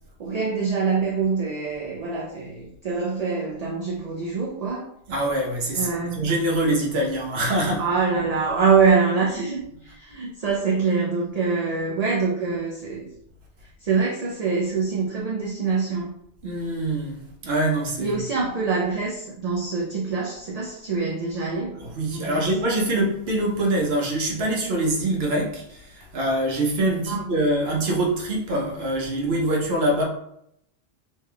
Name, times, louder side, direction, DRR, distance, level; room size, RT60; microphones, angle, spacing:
voice 1, 0.2-4.9 5.7-6.3 7.8-13.1 13.8-16.1 18.0-21.8 22.1-22.5 27.1-27.3, right 5 dB, 50° right, 0.5 m, -25 dB
voice 2, 5.1-7.8 16.4-18.2 21.8-30.0, right 1 dB, 65° right, 1.1 m, -24 dB
3.3 x 3.2 x 2.2 m
omnidirectional pair, 1.1 m